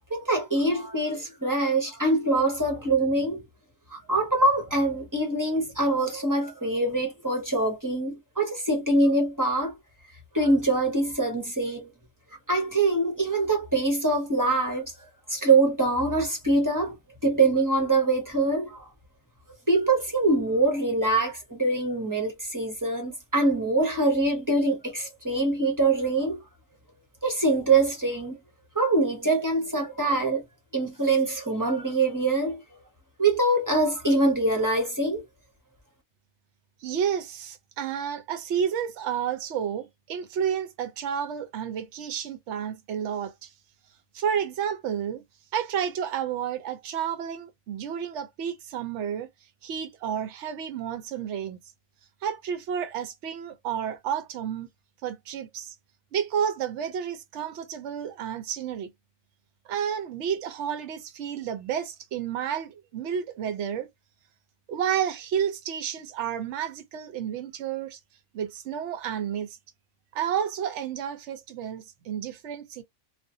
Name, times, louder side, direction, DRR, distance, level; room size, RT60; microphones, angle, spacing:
voice 1, 0.1-3.4 3.9-9.8 10.3-11.9 12.5-14.9 15.3-17.0 17.2-18.9 19.7-26.5 27.2-28.4 28.7-30.4 30.7-32.6 33.2-35.2, right 2 dB, 15° right, 0.9 m, -24 dB
voice 2, 36.8-43.5 44.1-45.2 45.5-49.3 49.6-51.6 52.2-54.7 55.0-55.7 56.1-58.9 59.7-63.9 64.7-68.0 68.3-69.6 70.1-72.8, right 8 dB, 60° right, 0.9 m, -31 dB
2.5 x 2.4 x 2.6 m
omnidirectional pair, 1.5 m